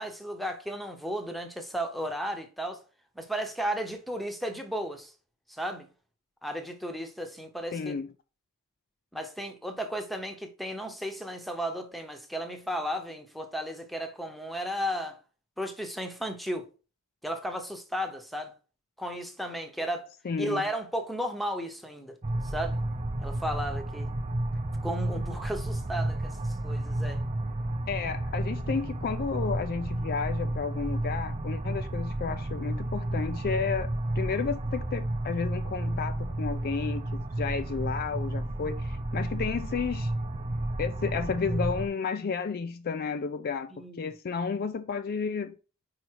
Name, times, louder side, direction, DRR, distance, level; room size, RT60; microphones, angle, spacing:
voice 1, 0.0-2.8 3.2-5.1 5.5-5.9 6.4-7.9 9.1-15.2 15.6-16.6 17.2-18.5 19.0-20.1 20.4-22.1 22.4-22.8 23.2-24.1 24.8-26.4 26.6-27.2 43.7-44.1, equal, ahead, 0.9 m, -34 dB
voice 2, 7.7-8.1 20.2-20.7 27.9-40.1 40.8-45.6, left 5 dB, 45° left, 0.4 m, -32 dB
sound 1, 22.2-41.9, right 1 dB, 30° right, 0.7 m, -32 dB
5.1 x 4.8 x 4.6 m
head